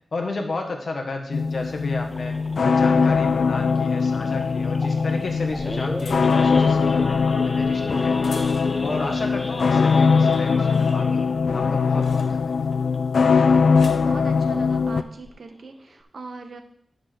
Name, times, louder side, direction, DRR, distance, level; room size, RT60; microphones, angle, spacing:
voice 1, 0.1-8.4 8.8-11.3 11.5-12.6, left 3 dB, 50° left, 3 dB, 1.5 m, -32 dB
sound 1, 1.3-15.0, left 5 dB, 65° left, 0.4 m, -21 dB
Idling / Accelerating revving vroom / Sawing, 2.1-13.2 13.6-13.8 14.1-14.2 14.6-14.9 15.4-15.5 15.7-16.0, left 1 dB, 15° left, 0.8 m, -37 dB
sound 2, 5.3-9.0 9.4-9.8 10.1-12.7 13.4-14.1 15.0-15.3, left 3 dB, 85° left, 1.9 m, -46 dB
voice 2, 13.2-16.6, right 3 dB, 60° right, 6 dB, 1.0 m, -40 dB
9.9 x 3.9 x 6.6 m, 0.70 s
wide cardioid pair, 155°, 0 cm